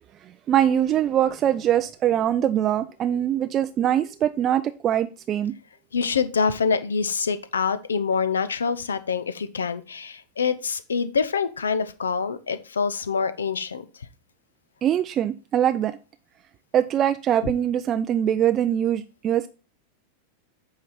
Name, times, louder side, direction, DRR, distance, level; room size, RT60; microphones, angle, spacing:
voice 1, 0.5-5.5 14.8-16.0 16.7-19.5, right 10 dB, 30° right, 0.4 m, -22 dB
voice 2, 5.9-13.8 17.4-17.5, left 5 dB, 70° left, 0.6 m, -25 dB
8.3 x 4.9 x 4.1 m
figure-of-eight pair, 90°, 0 cm